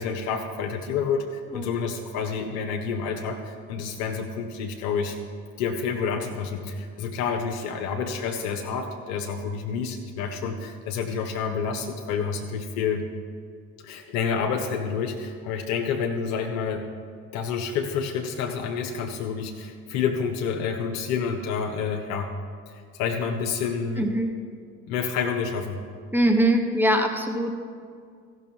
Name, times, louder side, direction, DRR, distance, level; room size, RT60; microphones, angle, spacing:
voice 1, 0.0-5.2 5.6-13.0 13.8-16.9 17.3-22.3 22.7-24.1 24.9-25.8, left 6 dB, 65° left, 4 dB, 0.8 m, -29 dB
voice 2, 24.0-24.3 26.1-27.5, right 1 dB, 5° right, 4 dB, 1.2 m, -22 dB
15.0 x 6.2 x 4.5 m, 2.1 s
figure-of-eight pair, 50°, 43 cm